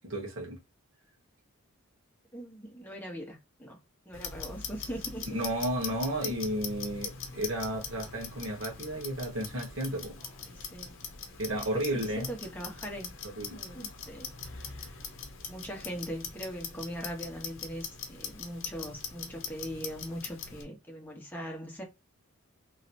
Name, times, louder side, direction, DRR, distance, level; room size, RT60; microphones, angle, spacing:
voice 1, 0.0-0.6 5.3-10.2 11.4-12.3 13.4-13.6, right 1 dB, 60° right, 1.4 m, -33 dB
voice 2, 2.3-5.4 10.4-11.0 11.6-13.1 13.5-14.3 15.5-21.8, equal, 10° left, 0.9 m, -41 dB
Clock, 4.1-20.6, left 6 dB, 60° left, 0.7 m, -42 dB
3.1 x 2.8 x 2.5 m
head